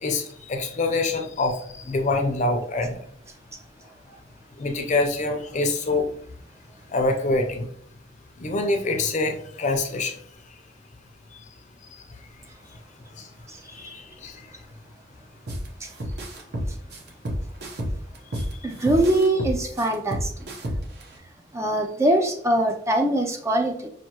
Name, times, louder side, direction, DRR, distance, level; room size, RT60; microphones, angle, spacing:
voice 1, 0.0-3.0 4.6-6.1 6.9-7.7 8.4-10.2 11.3-11.4 11.9-12.2 13.2-13.3 13.7-14.5 18.3-18.6, left 2 dB, 40° left, 4 dB, 0.6 m, -26 dB
sound 1, 15.5-15.7 16.0-18.5 18.9-21.0, equal, 60° right, 0.8 m, -29 dB
voice 2, 18.6-20.3 21.5-23.9, right 1 dB, 15° right, 4 dB, 0.4 m, -22 dB
5.7 x 2.7 x 2.9 m, 0.63 s
head